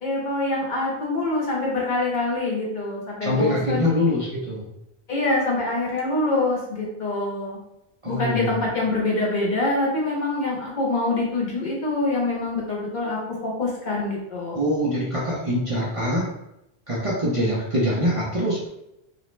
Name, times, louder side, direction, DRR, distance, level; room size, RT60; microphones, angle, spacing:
voice 1, 0.0-3.9 5.1-7.6 8.1-14.6, left 2 dB, 55° left, -3 dB, 0.8 m, -25 dB
voice 2, 3.2-4.7 8.0-8.7 14.5-16.3 16.9-18.7, equal, 40° right, -5 dB, 0.5 m, -24 dB
2.5 x 2.0 x 3.0 m, 0.84 s
omnidirectional pair, 1.0 m